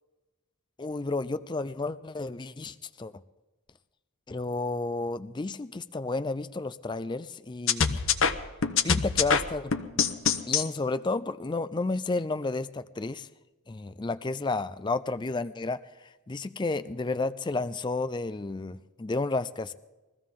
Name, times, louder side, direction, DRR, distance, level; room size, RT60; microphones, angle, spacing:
voice 1, 0.8-3.1 4.3-8.0 8.8-9.7 10.5-13.3 13.7-15.8 16.3-19.7, left 3 dB, 20° left, 13 dB, 0.4 m, -31 dB
sound 1, 7.7-10.7, left 6 dB, 60° left, 1.0 m, -25 dB
22.0 x 15.0 x 3.8 m, 1.1 s
head